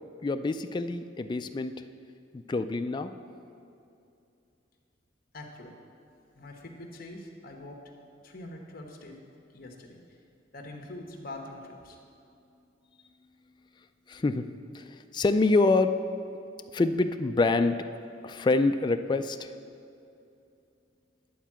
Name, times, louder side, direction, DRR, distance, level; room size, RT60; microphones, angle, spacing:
voice 1, 0.2-1.8 2.3-3.1 14.1-14.5 14.7-16.0 16.7-17.8 18.2-19.5, left 3 dB, 25° left, 8 dB, 0.3 m, -26 dB
voice 2, 5.3-5.7 6.3-7.8 8.2-10.0 10.5-12.0, left 1 dB, 50° left, 2 dB, 1.1 m, -44 dB
11.0 x 4.6 x 7.4 m, 2.6 s
head